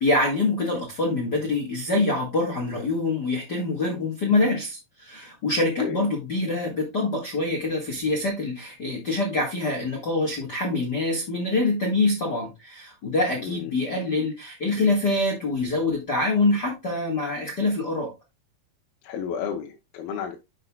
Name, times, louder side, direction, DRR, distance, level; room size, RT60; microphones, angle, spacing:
voice 1, 0.0-18.1, left 2 dB, 50° left, 1.3 m, -25 dB
voice 2, 19.0-20.4, left 7 dB, 75° left, 2.8 m, -32 dB
11.0 x 5.7 x 2.3 m
omnidirectional pair, 4.6 m